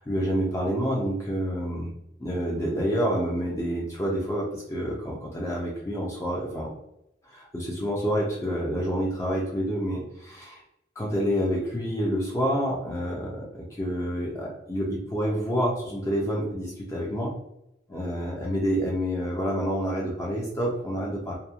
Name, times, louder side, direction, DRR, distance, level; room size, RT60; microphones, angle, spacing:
voice 1, 0.0-1.9 2.2-6.7 7.2-10.6 11.0-17.3 17.9-21.3, equal, 15° left, -3 dB, 0.4 m, -28 dB
2.8 x 2.1 x 2.4 m, 0.84 s
head